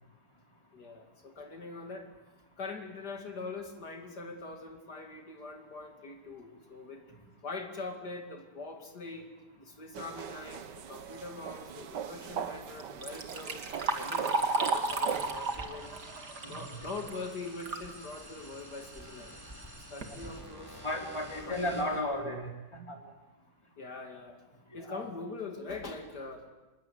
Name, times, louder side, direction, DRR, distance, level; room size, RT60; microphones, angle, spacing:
voice 1, 0.7-2.1 2.6-7.0 7.4-9.3 9.6-13.6 13.9-15.9 16.4-19.4 19.8-20.8 21.4-21.7 23.8-24.4 24.7-26.5, left 3 dB, 70° left, 3 dB, 3.1 m, -43 dB
sound 1, 9.9-15.3, right 8 dB, 85° right, 1.8 m, -40 dB
Liquid, 12.8-17.9 18.3-18.4 19.3-19.4 19.8-20.2 20.8-20.9 21.4-21.5 21.9-22.1, right 3 dB, 70° right, 2.8 m, -34 dB
sound 2, 14.9-22.0, right 1 dB, 10° right, 4.0 m, -49 dB
voice 2, 20.8-22.5 22.9-23.0 24.7-25.0, left 1 dB, 15° left, 1 dB, 4.1 m, -33 dB
27.5 x 20.5 x 9.6 m, 1.1 s
omnidirectional pair, 1.8 m